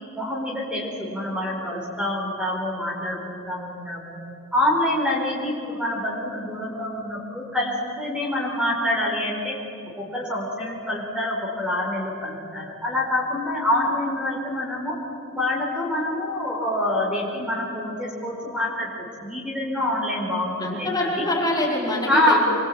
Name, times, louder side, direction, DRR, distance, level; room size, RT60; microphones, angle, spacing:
voice 1, 0.1-4.2 4.5-9.6 10.0-15.0 15.3-21.2 22.1-22.4, left 1 dB, 5° right, -3 dB, 4.7 m, -26 dB
voice 2, 20.6-22.4, left 1 dB, 20° left, -4 dB, 5.1 m, -25 dB
27.5 x 23.5 x 8.9 m, 2.6 s
head